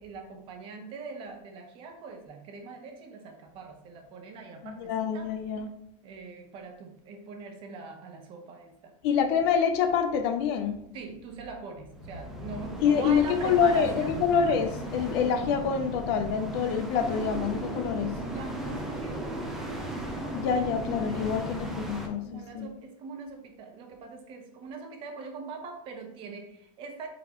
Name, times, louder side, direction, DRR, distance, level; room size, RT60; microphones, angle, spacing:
voice 1, 0.0-5.3 6.0-8.9 10.9-14.1 17.8-19.8 22.2-27.1, right 4 dB, 30° right, 4 dB, 0.9 m, -42 dB
voice 2, 4.6-5.7 9.0-10.8 12.8-18.1 20.3-22.7, left 7 dB, 45° left, 7 dB, 0.6 m, -26 dB
sound 1, 11.9-22.1, right 1 dB, ahead, 0.7 m, -36 dB
9.1 x 4.1 x 3.0 m, 0.74 s
supercardioid pair, 175°, 18 cm